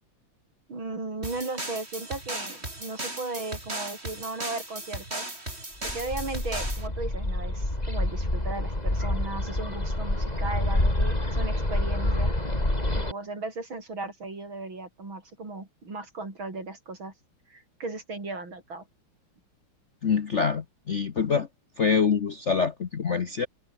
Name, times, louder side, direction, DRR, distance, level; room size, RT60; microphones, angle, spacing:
voice 1, 0.7-5.2 5.8-12.3 12.9-17.1 17.5-18.8, right 3 dB, 65° right, 6.9 m, -36 dB
sound 1, 1.2-6.9, right 1 dB, 30° right, 6.7 m, -37 dB
Bird, 5.8-13.1, left 1 dB, 20° left, 5.0 m, -27 dB
voice 2, 20.0-21.5 21.8-23.5, left 6 dB, 45° left, 1.0 m, -25 dB
omnidirectional pair, 2.3 m